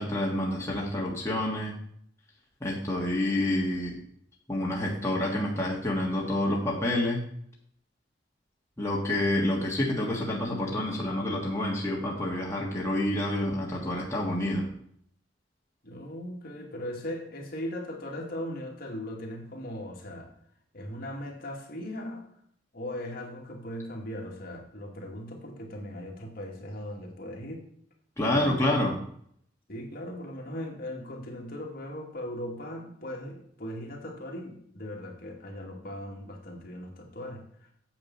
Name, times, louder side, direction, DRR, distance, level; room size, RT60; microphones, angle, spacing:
voice 1, 0.0-1.7 2.6-4.0 4.5-7.2 8.8-14.7 28.2-28.9, left 1 dB, 15° left, -3 dB, 1.6 m, -28 dB
voice 2, 15.8-20.3 20.7-22.3 22.7-27.6 28.3-28.7 29.7-37.7, left 1 dB, 50° left, 0 dB, 2.3 m, -38 dB
8.9 x 7.4 x 5.5 m, 0.66 s
head